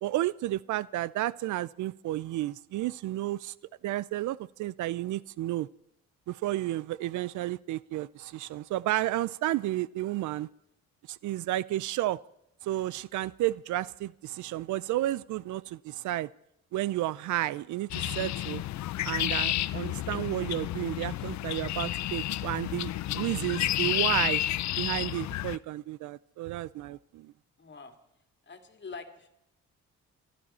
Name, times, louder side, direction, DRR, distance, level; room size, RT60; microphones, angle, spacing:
voice 1, 0.0-3.5 3.8-5.7 6.3-10.5 11.1-12.2 12.6-16.3 16.7-18.6 19.0-24.4 24.8-27.3, right 15 dB, 75° right, 0.5 m, -32 dB
sound 1, 17.9-25.6, left 14 dB, 65° left, 0.5 m, -31 dB
voice 2, 27.6-28.0 28.5-29.3, left 4 dB, 35° left, 2.3 m, -44 dB
25.5 x 11.5 x 4.3 m
cardioid pair, 90°, 30 cm